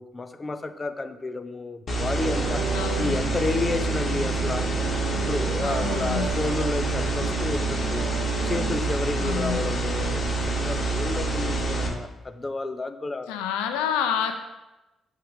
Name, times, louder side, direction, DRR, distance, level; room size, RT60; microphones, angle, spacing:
voice 1, 0.0-2.7 3.0-4.7 5.1-8.1 8.4-13.3, left 3 dB, 30° left, 10 dB, 0.7 m, -31 dB
sound 1, 1.9-11.9, right 2 dB, 50° left, 1.9 m, -27 dB
sound 2, 2.2-8.8, right 8 dB, 70° right, 0.4 m, -35 dB
voice 2, 2.7-3.2 5.6-6.3 9.2-9.6 13.3-14.3, left 9 dB, 85° left, 7 dB, 0.5 m, -28 dB
7.9 x 3.8 x 5.7 m, 1.0 s
hypercardioid pair, 50°, 0 cm